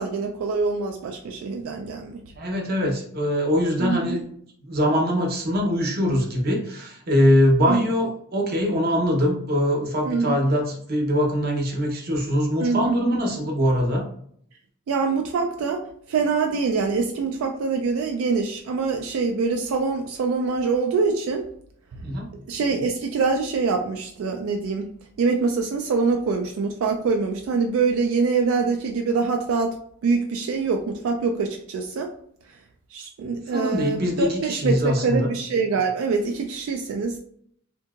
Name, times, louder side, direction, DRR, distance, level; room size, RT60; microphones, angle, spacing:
voice 1, 0.0-2.2 3.8-4.2 7.6-7.8 10.0-10.5 12.6-12.9 14.9-15.8 16.1-21.5 21.9-22.0 22.5-24.9 25.2-29.7 30.0-32.1 32.9-37.1, right 4 dB, 85° right, 3 dB, 0.3 m, -24 dB
voice 2, 2.4-4.2 4.7-14.1 22.0-22.3 33.5-35.3, equal, 50° right, 1 dB, 0.7 m, -22 dB
2.8 x 2.6 x 2.3 m, 0.65 s
head